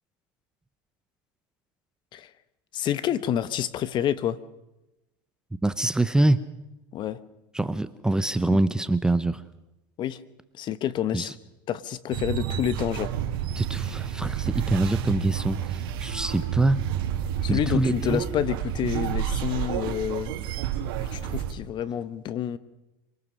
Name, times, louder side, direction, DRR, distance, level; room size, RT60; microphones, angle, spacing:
voice 1, 2.7-4.4 6.9-7.2 8.5-8.6 10.0-10.2 10.6-11.3 11.7-13.2 17.4-20.3 21.1-22.6, left 10 dB, 40° left, 16 dB, 1.0 m, -28 dB
voice 2, 5.6-6.4 7.5-9.4 11.1-11.3 13.6-16.8 17.5-18.2, right 2 dB, 5° right, 13 dB, 0.7 m, -25 dB
sound 1, 12.1-21.5, right 9 dB, 75° right, 2.3 m, -30 dB
26.0 x 19.0 x 6.4 m, 0.97 s
supercardioid pair, 120°, 12 cm